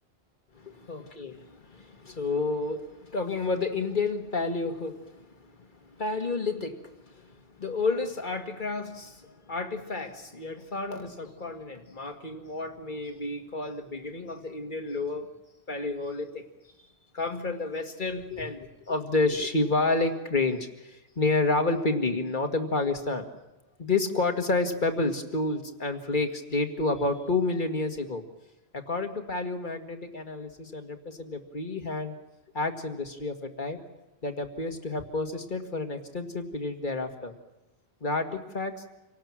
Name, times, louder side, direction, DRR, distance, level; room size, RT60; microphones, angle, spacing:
voice 1, 0.5-15.3 15.7-16.5 17.1-23.3 23.8-28.2 28.7-32.2 32.5-33.8 34.2-37.3 38.0-38.8, left 3 dB, 50° left, 5 dB, 2.1 m, -30 dB
27.0 x 18.0 x 7.5 m, 1.0 s
omnidirectional pair, 1.1 m